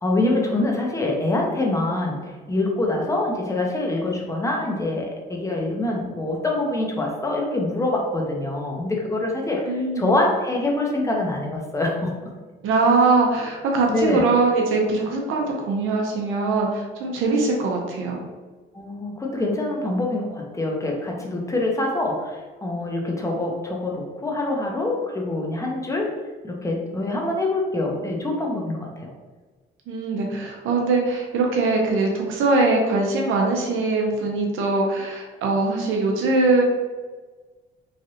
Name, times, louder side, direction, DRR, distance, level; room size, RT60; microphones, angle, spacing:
voice 1, 0.0-12.3 13.9-14.2 18.7-26.2 26.4-29.1, left 2 dB, 15° left, 0 dB, 0.7 m, -25 dB
voice 2, 9.7-10.1 12.6-18.2 29.9-36.6, right 3 dB, 80° right, 0 dB, 0.6 m, -22 dB
3.2 x 2.5 x 2.7 m, 1.3 s
cardioid pair, 90°, 20 cm